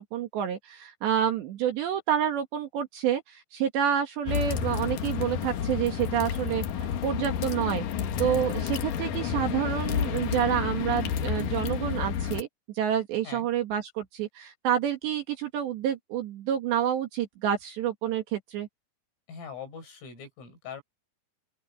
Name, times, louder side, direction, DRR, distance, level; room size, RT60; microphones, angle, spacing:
voice 1, 0.0-7.9 8.2-12.5 12.8-18.7, right 9 dB, 65° right, 3.7 m, -28 dB
sound 1, 4.3-12.4, left 8 dB, 65° left, 2.3 m, -30 dB
voice 2, 19.3-20.8, left 6 dB, 80° left, 9.7 m, -42 dB
open air
omnidirectional pair, 5.8 m